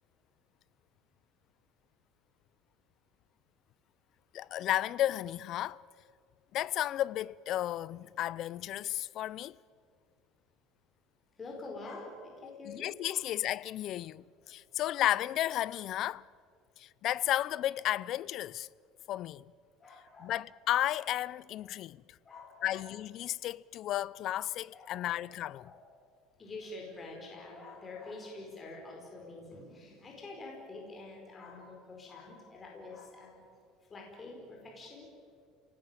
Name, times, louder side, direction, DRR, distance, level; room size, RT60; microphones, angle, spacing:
voice 1, 4.3-5.8 6.5-9.6 12.7-16.2 16.8-18.7 19.1-19.5 20.2-22.0 22.6-25.7, left 13 dB, 45° left, 0.5 m, -33 dB
voice 2, 11.4-13.3 19.8-20.4 22.2-22.8 24.7-25.4 25.6-25.8 26.4-33.4 33.9-35.1, left 2 dB, 20° left, 4.7 m, -47 dB
30.0 x 18.5 x 9.0 m
cardioid pair, 150°, 0 cm